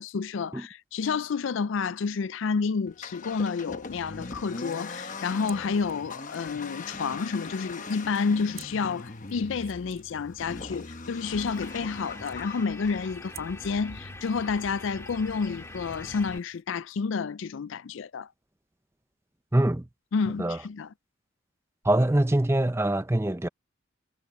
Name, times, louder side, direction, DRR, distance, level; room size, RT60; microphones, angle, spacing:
voice 1, 0.0-18.3 20.1-20.9, left 5 dB, 65° left, 0.4 m, -30 dB
Accelerating revving vroom, 2.9-16.4, left 3 dB, 40° left, 1.0 m, -41 dB
sound 1, 4.6-16.6, right 14 dB, 75° right, 3.0 m, -56 dB
sound 2, 11.2-16.4, left 2 dB, 15° left, 2.2 m, -44 dB
voice 2, 19.5-19.9 20.4-20.6 21.8-23.5, right 1 dB, 10° right, 0.6 m, -24 dB
head